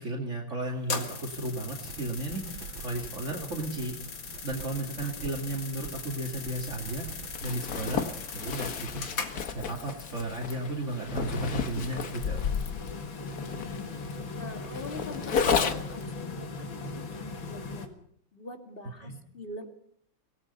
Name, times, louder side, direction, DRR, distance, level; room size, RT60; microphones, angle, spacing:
voice 1, 0.0-4.0 4.4-9.1 9.5-12.5 19.0-19.2, right 2 dB, 40° right, 3 dB, 2.6 m, -34 dB
sound 1, 0.8-17.9, left 4 dB, 85° left, 2.7 m, -39 dB
sound 2, 1.8-7.4, right 8 dB, 85° right, 1.8 m, -46 dB
Zipper (clothing), 7.3-16.0, left 6 dB, 55° left, 1.6 m, -32 dB
voice 2, 14.3-18.0 18.3-19.7, left 2 dB, 30° left, 4 dB, 2.4 m, -44 dB
25.5 x 18.5 x 5.5 m, 0.66 s
omnidirectional pair, 2.1 m